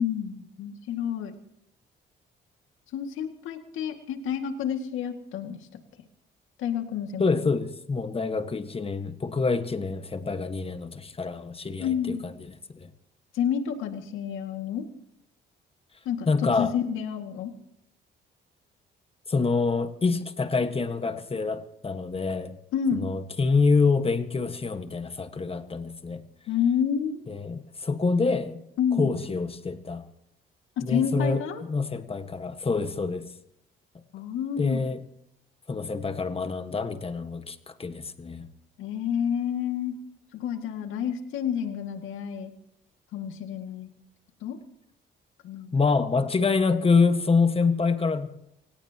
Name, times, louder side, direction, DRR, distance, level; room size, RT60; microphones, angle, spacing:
voice 1, 0.0-1.4 2.9-5.6 6.6-7.5 11.8-12.3 13.3-14.9 16.1-16.3 16.6-17.5 22.7-23.1 26.5-27.3 28.8-29.1 30.8-31.6 34.1-34.8 38.8-40.0 40.3-42.5 43.1-43.9 44.4-44.6 45.4-45.7, left 8 dB, 90° left, 5 dB, 2.2 m, -29 dB
voice 2, 7.2-12.3 12.7-12.9 16.3-16.7 19.3-22.5 22.9-26.2 27.3-28.6 29.0-30.0 30.8-31.4 31.7-33.3 34.6-35.0 35.7-38.5 45.7-48.3, left 4 dB, 30° left, 9 dB, 1.5 m, -26 dB
25.5 x 17.5 x 3.0 m, 0.77 s
cardioid pair, 90°, 20 cm